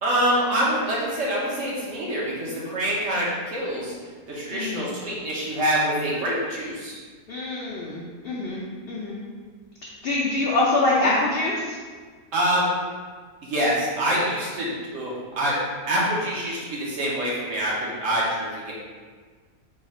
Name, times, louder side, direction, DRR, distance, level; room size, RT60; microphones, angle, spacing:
voice 1, 0.0-3.9 4.3-7.0 12.3-12.7 13.4-15.5 15.9-18.7, equal, 65° right, -5 dB, 1.1 m, -25 dB
voice 2, 4.5-4.9 7.3-9.2 10.0-11.8, left 2 dB, 65° left, -5 dB, 0.6 m, -25 dB
3.5 x 2.4 x 4.1 m, 1.5 s
omnidirectional pair, 1.5 m